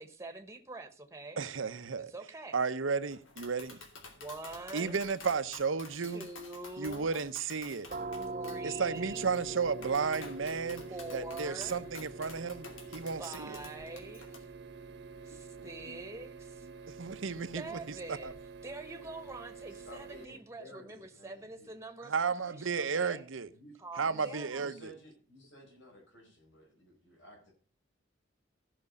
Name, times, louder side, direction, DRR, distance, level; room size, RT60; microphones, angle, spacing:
voice 1, 0.0-1.4 2.1-2.6 4.1-5.0 6.0-7.2 8.3-9.4 10.9-11.9 13.2-14.5 15.3-16.7 17.5-18.4 18.6-23.3 23.8-24.7, right 2 dB, 15° right, 1.2 m, -45 dB
voice 2, 1.4-2.1 2.5-3.8 4.7-6.2 6.8-7.9 8.6-10.8 11.1-12.7 12.9-13.6 15.9-16.0 16.9-17.8 18.1-18.3 22.1-23.5 24.0-24.9, right 5 dB, 90° right, 0.8 m, -33 dB
Tap, 3.1-14.4, left 3 dB, 85° left, 2.8 m, -51 dB
sound 1, 7.9-19.4, right 2 dB, 45° right, 0.7 m, -45 dB
sound 2, 9.1-20.3, right 6 dB, 65° right, 1.0 m, -50 dB
voice 3, 19.7-21.7 23.5-23.7 24.1-27.5, equal, 65° left, 4.8 m, -54 dB
15.5 x 6.0 x 5.3 m
head